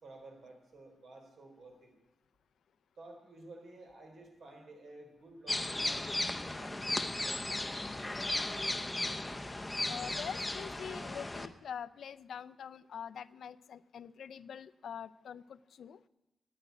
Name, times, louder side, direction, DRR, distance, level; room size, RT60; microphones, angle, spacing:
voice 1, 0.0-1.9 3.0-8.2, right 2 dB, 70° right, 3 dB, 3.3 m, -53 dB
sound 1, 5.5-11.5, left 2 dB, 10° left, 0.6 m, -36 dB
voice 2, 9.8-16.0, left 8 dB, 90° left, 16 dB, 0.4 m, -44 dB
10.0 x 9.3 x 9.0 m, 0.97 s
wide cardioid pair, 165°, 0 cm